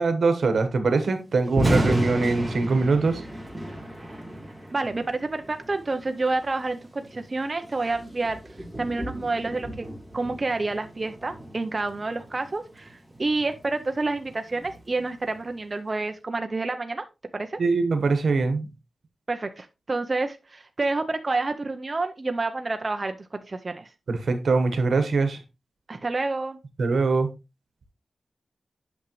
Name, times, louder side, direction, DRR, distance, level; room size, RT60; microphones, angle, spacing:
voice 1, 0.0-3.2 17.6-18.7 24.1-25.4 26.8-27.3, right 3 dB, 85° right, 9 dB, 1.2 m, -22 dB
Thunder, 1.4-15.6, right 1 dB, 5° right, 2.9 m, -34 dB
voice 2, 4.7-8.4 8.8-9.9 10.1-17.0 17.3-17.6 19.3-23.9 25.9-26.6, right 3 dB, 35° right, 7 dB, 0.6 m, -29 dB
8.6 x 6.2 x 3.1 m, 0.25 s
wide cardioid pair, 115°, 0 cm